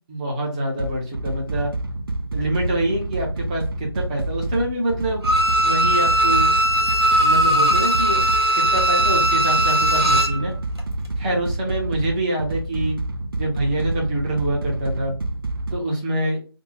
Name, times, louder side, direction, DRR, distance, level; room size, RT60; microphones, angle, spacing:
voice 1, 0.1-1.7 2.3-5.3 5.6-6.5 7.2-8.2 8.5-10.5 11.2-13.0 13.4-15.1 15.7-16.4, right 1 dB, 15° right, -1 dB, 0.8 m, -25 dB
sound 1, 0.8-15.7, right 2 dB, 60° right, 0.6 m, -28 dB
Bowed string instrument, 5.2-10.4 10.8-10.9, right 1 dB, 80° right, 1.8 m, -19 dB
3.4 x 2.2 x 3.3 m, 0.36 s
figure-of-eight pair, 160°, 13 cm